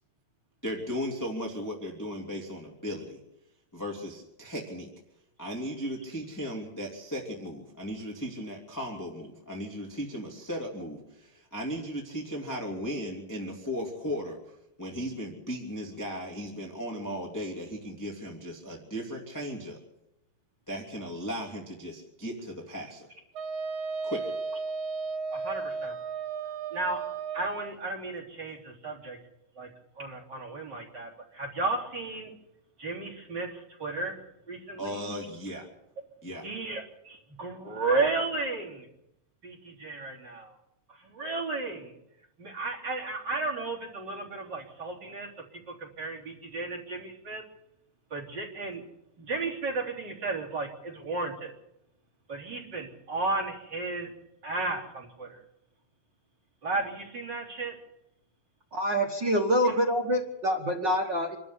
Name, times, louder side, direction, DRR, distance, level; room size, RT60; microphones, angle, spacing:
voice 1, 0.6-3.2 3.7-4.9 5.4-14.4 14.8-19.8 20.7-23.1 24.0-24.3 34.8-35.7 36.2-36.5, equal, 5° left, -2 dB, 2.4 m, -36 dB
Wind instrument woodwind instrument, 23.3-27.8, right 4 dB, 85° right, 1.1 m, -34 dB
voice 2, 25.3-26.0 26.7-27.0 27.3-29.2 29.6-29.7 30.0-32.3 32.8-35.0 36.4-38.9 39.4-40.6 40.9-41.9 42.4-47.4 48.1-48.8 49.2-51.5 52.3-54.1 54.4-55.4 56.6-57.8 59.2-59.3 59.6-59.8, right 3 dB, 30° right, -1 dB, 4.1 m, -34 dB
voice 3, 58.7-61.4, equal, 50° right, 2 dB, 1.4 m, -26 dB
27.0 x 13.0 x 8.2 m, 0.85 s
omnidirectional pair, 4.0 m